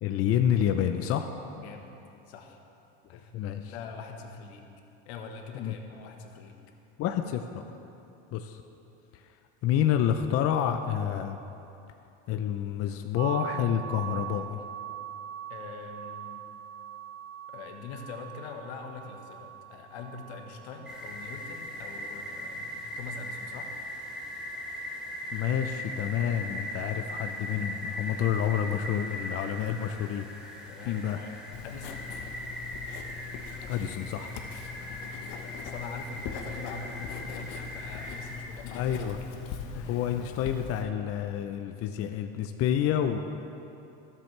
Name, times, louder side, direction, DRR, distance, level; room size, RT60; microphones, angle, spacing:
voice 1, 0.0-1.3 3.3-3.7 5.5-5.8 7.0-7.7 8.3-8.6 9.1-9.2 9.6-11.4 12.3-14.6 25.3-30.3 30.9-31.2 33.7-34.3 38.7-39.2 39.9-43.2, left 9 dB, 45° left, 7 dB, 0.6 m, -28 dB
voice 2, 1.6-1.9 2.3-2.6 3.1-3.3 3.7-4.6 5.0-6.6 15.5-16.4 17.5-23.7 30.7-32.1 34.7-39.0 39.7-40.0, left 4 dB, 85° left, 3 dB, 1.3 m, -43 dB
sound 1, 13.2-24.9, right 11 dB, 85° right, 0.7 m, -43 dB
sound 2, 20.8-38.4, left 1 dB, ahead, 2.5 m, -39 dB
Writing, 31.5-40.8, left 6 dB, 60° left, 1.1 m, -41 dB
20.0 x 7.5 x 3.3 m, 2.8 s
supercardioid pair, 105°, 32 cm